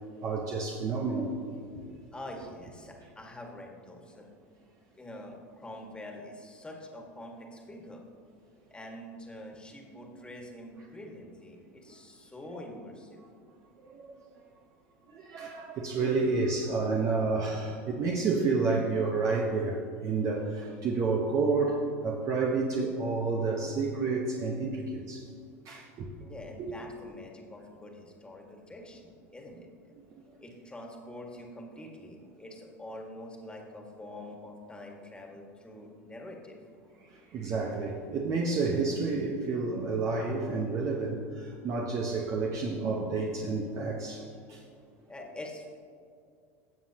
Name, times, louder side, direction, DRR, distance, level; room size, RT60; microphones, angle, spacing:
voice 1, 0.2-1.3 1.7-1.9 13.8-14.1 15.1-25.3 25.6-26.1 26.6-26.7 37.0-44.6, right 4 dB, 45° right, -1 dB, 1.1 m, -30 dB
voice 2, 2.1-4.3 5.0-8.0 8.7-13.2 26.2-29.9 30.4-36.6 45.1-45.7, left 1 dB, 10° left, 1 dB, 1.9 m, -45 dB
16.5 x 7.2 x 3.0 m, 2.3 s
hypercardioid pair, 90°, 8 cm